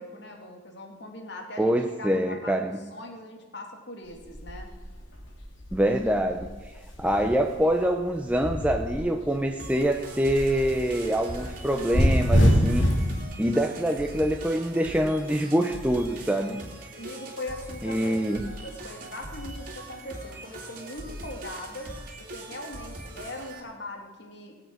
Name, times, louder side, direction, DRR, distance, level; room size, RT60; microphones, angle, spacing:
voice 1, 0.0-4.7 16.9-21.9 22.3-24.5, left 1 dB, 60° left, 3 dB, 2.2 m, -40 dB
voice 2, 1.6-2.8 5.7-6.5 7.0-12.9 13.4-16.6 17.8-18.5, right 1 dB, 5° right, 3 dB, 0.6 m, -25 dB
sound 1, 4.1-9.3 9.7-13.1, equal, 80° left, 3.2 m, -26 dB
sound 2, 9.6-23.6, right 2 dB, 45° right, 2.5 m, -41 dB
19.5 x 8.2 x 6.2 m, 1.3 s
head